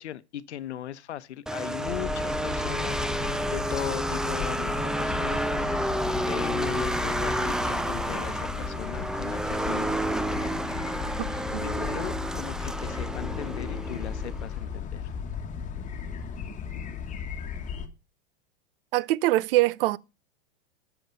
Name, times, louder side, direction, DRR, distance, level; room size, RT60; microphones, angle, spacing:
voice 1, 0.0-3.0 3.5-5.4 6.3-9.9 11.6-15.1, left 11 dB, 80° left, 1.0 m, -38 dB
sound 1, 1.5-14.5, right 1 dB, ahead, 0.6 m, -30 dB
sound 2, 1.9-17.9, left 6 dB, 25° left, 1.7 m, -35 dB
voice 2, 18.9-20.0, right 18 dB, 55° right, 0.7 m, -23 dB
13.0 x 7.1 x 5.4 m
hypercardioid pair, 120°, 33 cm